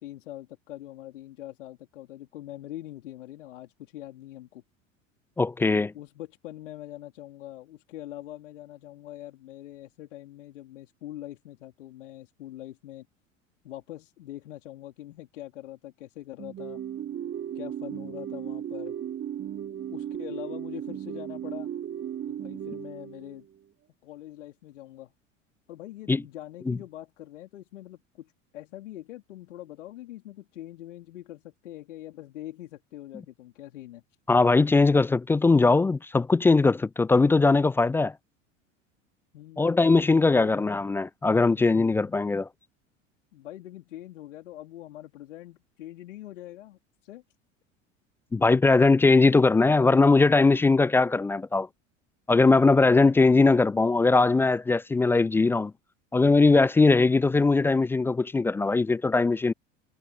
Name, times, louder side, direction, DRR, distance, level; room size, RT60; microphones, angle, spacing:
voice 1, 0.0-4.6 5.6-13.1 13.6-16.8 17.5-18.9 19.9-21.7 22.3-23.5 24.0-25.1 25.7-34.0 39.3-40.6 43.3-47.2, left 14 dB, 65° left, 3.3 m, -43 dB
voice 2, 5.4-5.9 26.1-26.2 26.7-26.8 34.3-38.1 39.6-42.5 48.3-51.7 52.3-55.7 56.1-59.5, left 3 dB, 5° left, 0.3 m, -20 dB
sound 1, 16.4-23.6, right 10 dB, 30° right, 2.5 m, -36 dB
figure-of-eight pair, 75°, 39 cm